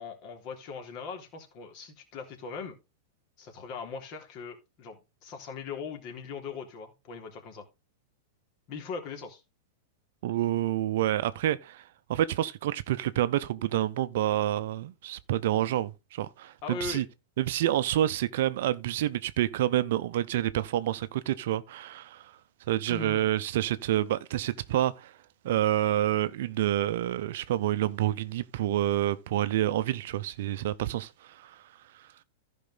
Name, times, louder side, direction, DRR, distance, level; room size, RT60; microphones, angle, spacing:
voice 1, 0.0-2.7 3.4-7.6 8.7-9.4 16.6-17.0 22.9-23.2, left 5 dB, 45° left, 3.3 m, -40 dB
voice 2, 10.2-11.8 12.1-17.0 17.4-22.3 22.7-25.1 25.4-31.6, right 13 dB, 60° right, 0.6 m, -28 dB
14.5 x 5.4 x 3.9 m
figure-of-eight pair, 95°, 0 cm